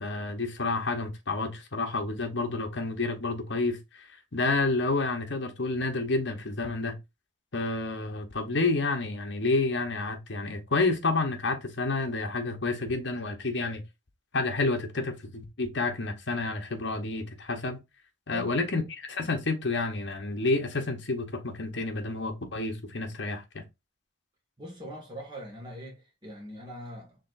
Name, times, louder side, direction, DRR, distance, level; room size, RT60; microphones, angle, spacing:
voice 1, 0.0-7.0 7.5-13.8 14.3-17.8 18.3-23.6, left 3 dB, 60° left, 1.0 m, -29 dB
voice 2, 18.3-18.7 24.6-27.2, right 1 dB, 20° right, 1.7 m, -42 dB
5.0 x 3.2 x 2.5 m
head